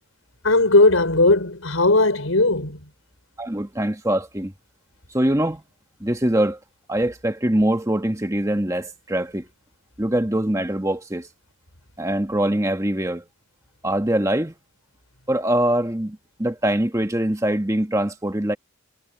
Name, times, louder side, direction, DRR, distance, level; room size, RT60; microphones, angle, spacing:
voice 1, 0.4-2.8, left 2 dB, 80° left, 5.0 m, -17 dB
voice 2, 3.4-4.5 5.1-5.6 6.0-6.6 6.9-9.5 10.0-11.3 12.0-13.2 13.8-14.5 15.3-18.6, right 1 dB, 15° right, 1.4 m, -23 dB
head